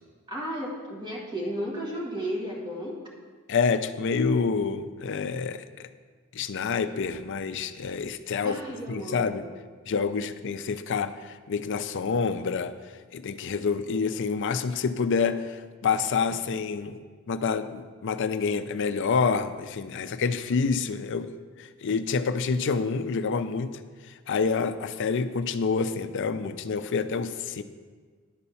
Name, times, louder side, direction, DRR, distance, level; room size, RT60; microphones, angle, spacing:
voice 1, 0.3-3.0 8.4-9.5, equal, 20° right, -3 dB, 1.9 m, -33 dB
voice 2, 3.5-5.9 6.3-8.6 8.9-9.5 9.9-12.8 13.1-17.0 17.3-21.3 21.6-23.7 24.3-27.6, left 5 dB, 55° left, 11 dB, 0.5 m, -27 dB
10.5 x 4.1 x 7.0 m, 1.6 s
head